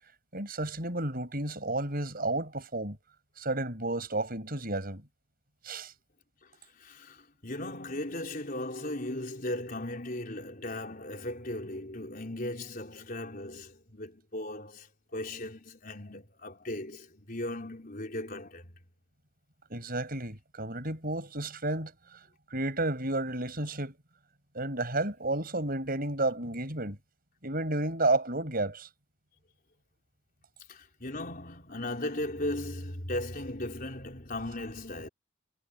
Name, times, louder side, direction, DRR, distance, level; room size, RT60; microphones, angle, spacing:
voice 1, 0.3-3.0 3.4-5.0 5.6-5.9 19.7-22.2 22.5-24.0 24.5-27.0 27.4-28.9, right 2 dB, 45° right, 7.0 m, -31 dB
voice 2, 6.8-18.7 30.7-35.1, left 1 dB, 40° left, 4.7 m, -37 dB
head